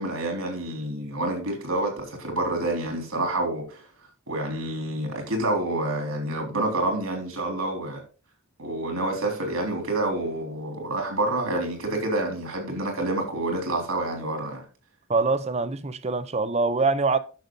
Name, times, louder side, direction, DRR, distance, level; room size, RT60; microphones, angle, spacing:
voice 1, 0.0-3.8 4.3-8.0 8.6-14.6, right 2 dB, 75° right, 3.5 m, -28 dB
voice 2, 15.1-17.2, right 3 dB, 30° right, 0.6 m, -24 dB
10.5 x 6.9 x 3.9 m
head